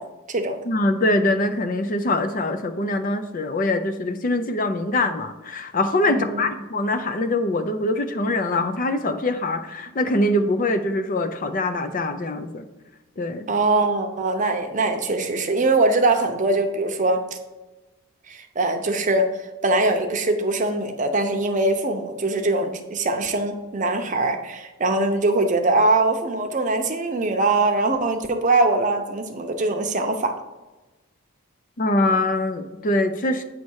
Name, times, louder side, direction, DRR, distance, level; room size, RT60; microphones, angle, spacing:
voice 1, 0.0-0.6 6.1-6.4 13.5-17.4 18.3-30.3, right 2 dB, 35° right, 5 dB, 0.7 m, -22 dB
voice 2, 0.6-12.6 13.2-13.5 31.8-33.4, left 2 dB, 40° left, 8 dB, 0.5 m, -23 dB
8.4 x 3.1 x 6.3 m, 1.1 s
head